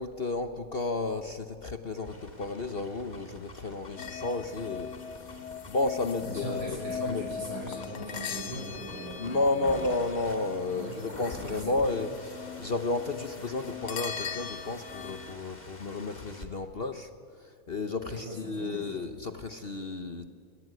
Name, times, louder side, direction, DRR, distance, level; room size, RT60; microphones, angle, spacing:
voice 1, 0.0-7.2 9.2-17.1 17.4-20.3, left 2 dB, 50° left, 8 dB, 0.7 m, -32 dB
sound 1, 2.0-16.5, left 2 dB, 20° left, 2.2 m, -47 dB
sound 2, 4.0-15.3, left 7 dB, 80° left, 2.4 m, -40 dB
voice 2, 6.3-9.8 10.7-11.0 11.5-11.9 18.1-19.0, equal, 60° right, -3 dB, 7.1 m, -40 dB
24.0 x 20.0 x 9.6 m, 2.3 s
omnidirectional pair, 2.3 m